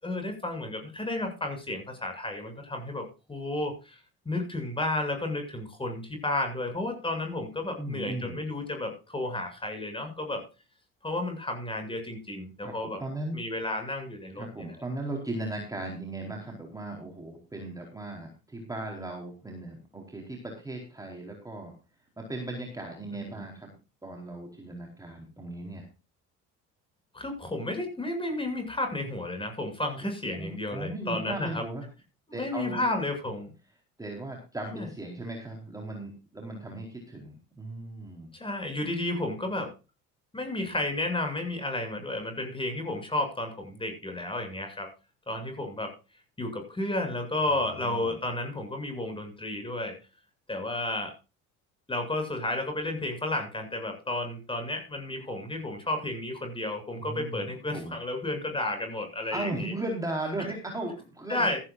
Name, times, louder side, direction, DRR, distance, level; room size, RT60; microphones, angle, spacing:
voice 1, 0.0-4.0 4.3-10.4 11.0-13.0 13.3-14.8 23.1-23.4 27.1-31.6 32.3-33.5 34.7-34.9 38.3-39.7 40.3-44.9 45.3-45.9 46.4-50.0 50.5-51.1 51.9-59.7 61.3-61.6, left 2 dB, 15° left, 5 dB, 7.6 m, -32 dB
voice 2, 7.8-8.4 12.6-13.4 14.3-21.7 22.2-23.7 24.0-25.9 30.3-31.9 32.3-32.8 34.0-38.3 47.5-48.2 57.0-58.0 59.3-61.5, right 2 dB, 10° right, 1 dB, 4.4 m, -37 dB
16.5 x 14.5 x 2.6 m, 0.31 s
supercardioid pair, 95°, 32 cm